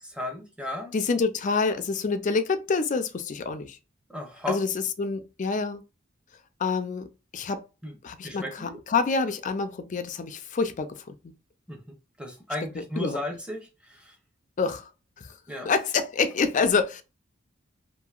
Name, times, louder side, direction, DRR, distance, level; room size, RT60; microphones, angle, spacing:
voice 1, 0.2-0.9 4.1-4.6 7.8-8.0 8.2-8.8 11.7-14.2 15.5-15.7, left 1 dB, 5° right, 0.8 m, -35 dB
voice 2, 0.9-3.8 4.5-5.8 6.6-7.7 8.0-11.1 13.0-13.2 14.6-14.9 15.2-15.3 15.6-17.0, left 4 dB, 40° left, 0.4 m, -27 dB
2.8 x 2.6 x 2.4 m
head